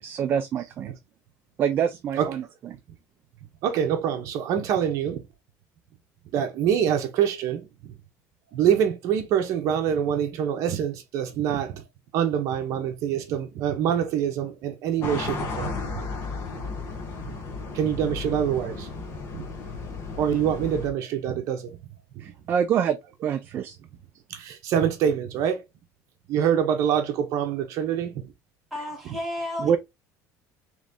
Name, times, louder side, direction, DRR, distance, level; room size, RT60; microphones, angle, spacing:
voice 1, 0.0-0.9 1.6-2.8 22.2-23.8 29.6-29.8, right 8 dB, 30° right, 0.4 m, -26 dB
voice 2, 3.6-5.2 6.3-7.9 8.5-11.8 12.1-15.8 17.7-18.9 19.3-19.4 20.2-21.8 22.2-22.3 24.3-25.6 26.3-28.2, right 9 dB, 50° right, 0.9 m, -25 dB
sound 1, 15.0-20.9, left 4 dB, 40° left, 1.1 m, -34 dB
voice 3, 28.7-29.8, left 1 dB, ahead, 1.4 m, -32 dB
4.0 x 3.2 x 3.5 m
cardioid pair, 175°, 7 cm